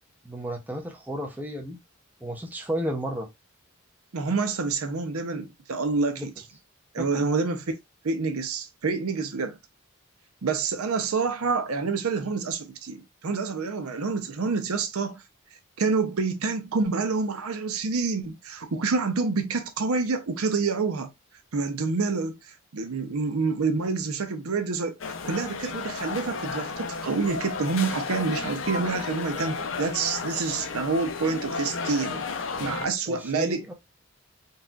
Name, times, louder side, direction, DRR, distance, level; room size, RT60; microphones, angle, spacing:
voice 1, 0.2-1.8 2.2-3.3 6.2-6.3 7.0-7.2 32.8-33.7, equal, 10° right, 0.5 m, -33 dB
voice 2, 4.1-6.3 6.9-7.6 8.0-9.6 10.4-15.2 15.8-21.1 21.5-22.4 22.7-25.0 25.2-33.7, right 4 dB, 85° right, 0.6 m, -27 dB
sound 1, 25.0-32.9, left 4 dB, 60° left, 0.5 m, -33 dB
4.1 x 2.4 x 2.3 m
head